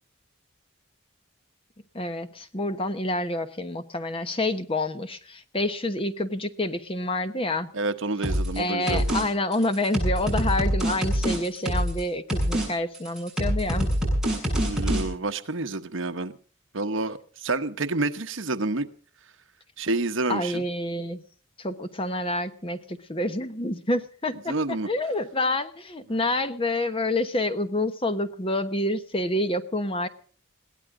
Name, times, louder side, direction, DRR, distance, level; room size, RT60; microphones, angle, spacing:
voice 1, 1.9-7.7 8.6-13.9 20.3-21.2 21.6-30.1, left 1 dB, 25° left, 1.1 m, -28 dB
voice 2, 7.7-9.2 14.5-16.3 16.7-18.9 19.8-20.6 24.5-24.9, right 2 dB, 65° right, 1.1 m, -29 dB
sound 1, 8.2-8.6 8.9-9.2 9.5-12.0 12.3-12.7 12.9-15.0, equal, 5° right, 7.6 m, -25 dB
21.5 x 17.0 x 3.8 m
head